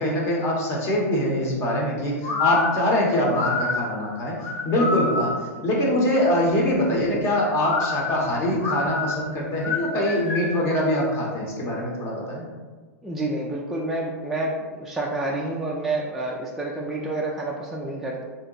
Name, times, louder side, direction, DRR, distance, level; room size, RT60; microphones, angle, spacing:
voice 1, 0.0-4.4 4.6-5.3 5.6-12.4, left 1 dB, 35° left, -2 dB, 0.8 m, -23 dB
sound 1, 2.2-5.6 7.5-10.7, left 3 dB, 60° left, 0.9 m, -28 dB
voice 2, 13.0-18.2, right 2 dB, 5° right, -3 dB, 0.3 m, -28 dB
2.7 x 2.1 x 3.9 m, 1.4 s
hypercardioid pair, 125°, 8 cm